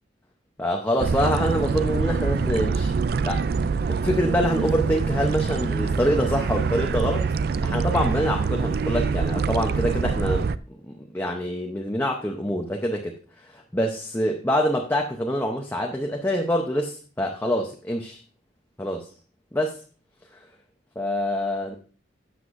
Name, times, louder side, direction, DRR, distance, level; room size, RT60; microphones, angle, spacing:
voice 1, 0.6-2.9 3.2-7.2 7.6-10.5 10.9-13.1 13.5-18.2 18.8-19.1 19.5-19.8 21.0-21.8, equal, 10° left, 1 dB, 0.7 m, -25 dB
sound 1, 1.0-10.6, right 5 dB, 55° right, 0.3 m, -25 dB
12.5 x 7.7 x 2.6 m, 0.38 s
head